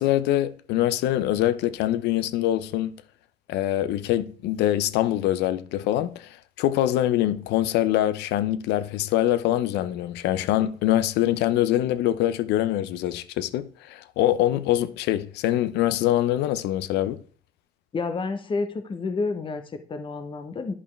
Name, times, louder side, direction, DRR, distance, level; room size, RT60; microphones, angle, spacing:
voice 1, 0.0-3.0 3.5-17.2, left 13 dB, 85° left, 0.6 m, -24 dB
voice 2, 17.9-20.7, left 4 dB, 30° left, 0.9 m, -29 dB
11.0 x 5.4 x 3.2 m
cardioid pair, 110°, 17 cm